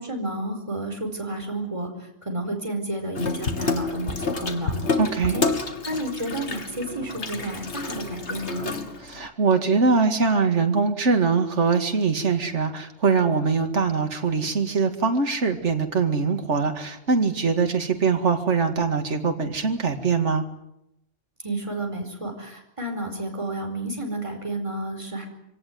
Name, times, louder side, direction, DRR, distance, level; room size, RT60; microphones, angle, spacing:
voice 1, 0.0-4.9 5.3-5.5 5.8-8.7 21.4-25.3, right 1 dB, 25° right, 4 dB, 4.7 m, -31 dB
Water tap faucet / Sink (filling or washing), 3.1-9.3, left 3 dB, 65° left, 2.3 m, -29 dB
voice 2, 5.0-5.4 9.0-20.4, right 5 dB, 65° right, 5 dB, 2.5 m, -22 dB
24.5 x 18.0 x 9.4 m, 0.81 s
omnidirectional pair, 1.3 m